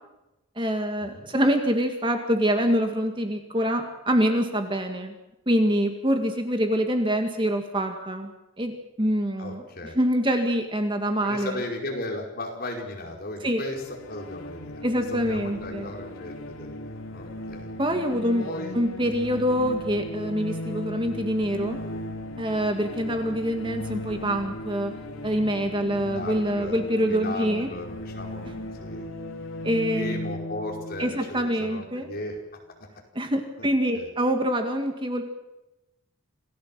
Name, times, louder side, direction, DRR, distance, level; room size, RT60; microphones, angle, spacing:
voice 1, 0.6-5.1 5.5-8.3 8.6-9.6 9.9-11.6 13.4-13.6 14.8-15.9 17.8-18.5 18.7-21.8 22.4-24.9 25.2-27.7 29.6-30.3 31.0-32.1 33.1-35.2, equal, 25° right, 5 dB, 2.0 m, -25 dB
voice 2, 9.4-10.0 11.2-17.7 18.4-18.8 26.1-26.8 27.1-28.5 28.8-29.1 29.9-32.4 33.6-33.7 33.9-34.1, left 2 dB, 45° left, 1 dB, 5.0 m, -36 dB
sound 1, 13.6-32.2, left 1 dB, 75° left, 2.9 m, -37 dB
27.5 x 17.0 x 7.6 m, 0.95 s
head